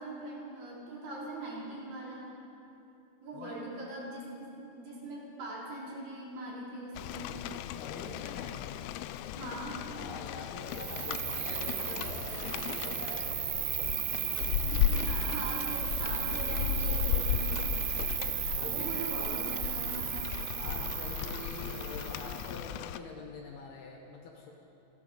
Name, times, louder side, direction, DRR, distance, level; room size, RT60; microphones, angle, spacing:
voice 1, 0.0-2.4 3.2-7.4 9.3-9.9 14.6-17.6 18.7-20.2, right 1 dB, 50° right, -5 dB, 4.3 m, -41 dB
Rain, 7.0-23.0, left 11 dB, 85° left, 2.8 m, -35 dB
voice 2, 7.7-8.6 9.9-13.5 18.0-19.1 20.6-24.5, left 3 dB, 70° left, 0 dB, 2.8 m, -45 dB
Cricket, 10.7-22.7, right 15 dB, 80° right, 2.5 m, -35 dB
28.5 x 12.5 x 3.9 m, 2.8 s
omnidirectional pair, 5.4 m